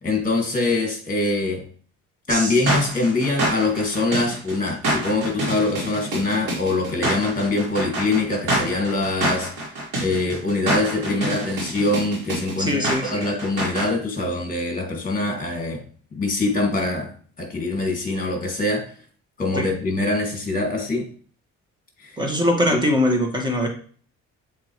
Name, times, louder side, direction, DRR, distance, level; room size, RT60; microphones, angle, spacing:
voice 1, 0.0-1.6 2.3-9.5 10.0-12.8 13.1-15.8 16.1-17.1 17.4-18.8 19.4-21.1 22.0-22.2, left 2 dB, 25° left, 2 dB, 2.4 m, -23 dB
sound 1, 2.3-13.9, right 1 dB, 85° right, 2.8 m, -26 dB
voice 2, 12.6-13.3 19.5-19.7 22.2-23.7, left 1 dB, 15° right, 2 dB, 1.7 m, -22 dB
7.4 x 4.0 x 3.2 m, 0.43 s
cardioid pair, 90°, 30 cm